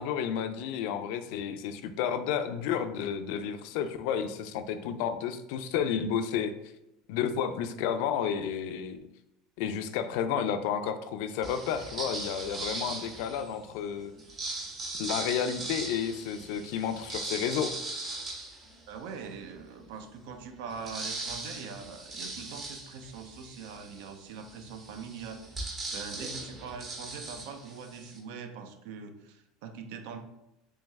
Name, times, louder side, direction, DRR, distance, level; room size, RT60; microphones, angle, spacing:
voice 1, 0.0-6.5 7.1-9.0 9.6-14.1 15.0-17.7, left 8 dB, 70° left, 10 dB, 0.3 m, -31 dB
sound 1, 11.4-13.6 14.2-19.4 19.8-19.9 20.2-28.2, right 2 dB, 25° right, 0.8 m, -39 dB
voice 2, 18.9-25.7 25.9-30.2, right 5 dB, 75° right, 7 dB, 0.5 m, -43 dB
3.2 x 3.1 x 3.4 m, 0.89 s
supercardioid pair, 145°, 0 cm